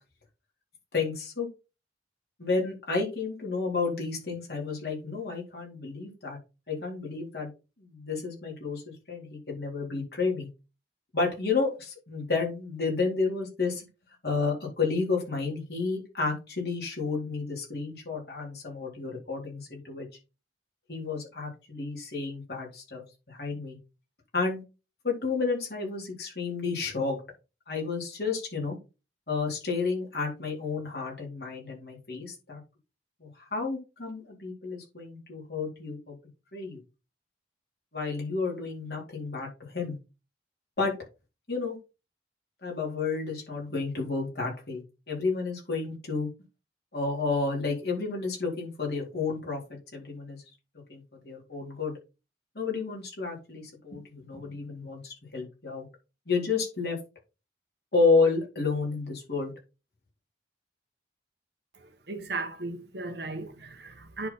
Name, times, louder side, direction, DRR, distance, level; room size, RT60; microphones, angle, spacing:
voice 1, 0.9-1.5 2.4-6.4 6.7-7.5 7.8-10.5 11.1-13.8 14.2-20.1 20.9-23.8 24.3-24.6 25.0-27.2 27.7-28.8 29.3-32.6 33.2-36.2 36.5-36.8 37.9-40.0 40.8-40.9 41.5-41.8 42.6-44.8 45.1-46.3 46.9-50.4 50.9-51.9 52.5-55.9 56.3-57.0 57.9-59.5, left 4 dB, 55° left, 3.9 m, -31 dB
voice 2, 61.8-64.3, right 3 dB, 65° right, 1.5 m, -36 dB
10.0 x 4.2 x 4.3 m
head